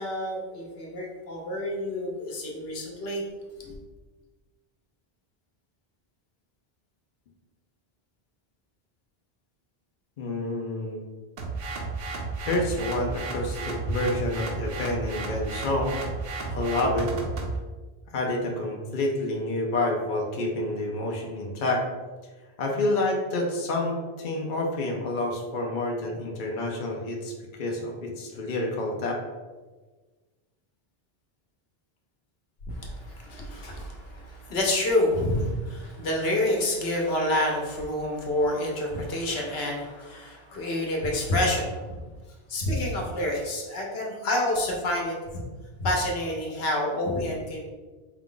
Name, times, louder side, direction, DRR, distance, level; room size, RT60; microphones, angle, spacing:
voice 1, 0.0-3.2 3.6-3.7 32.7-42.0 42.5-45.4 45.8-47.7, left 1 dB, 80° left, -1 dB, 1.1 m, -28 dB
voice 2, 10.2-11.0 12.5-15.9 16.5-17.1 18.1-21.8 22.6-27.3 27.6-29.2, left 2 dB, 60° left, 0 dB, 0.7 m, -28 dB
sound 1, 11.4-17.6, right 3 dB, 70° right, 0.9 m, -33 dB
4.6 x 2.4 x 3.7 m, 1.3 s
omnidirectional pair, 1.0 m